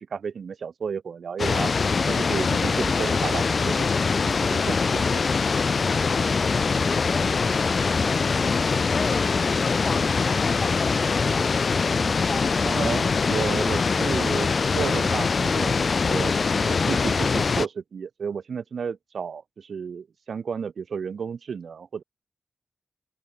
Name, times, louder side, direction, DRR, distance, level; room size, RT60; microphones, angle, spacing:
voice 1, 0.0-1.7 2.0-5.3 12.6-22.0, right 6 dB, 80° right, 4.7 m, -32 dB
sound 1, 1.4-17.7, left 4 dB, 55° left, 0.6 m, -23 dB
voice 2, 6.3-8.5 8.9-11.5 12.1-12.5, left 3 dB, 40° left, 4.7 m, -36 dB
open air
wide cardioid pair, 110°, 0 cm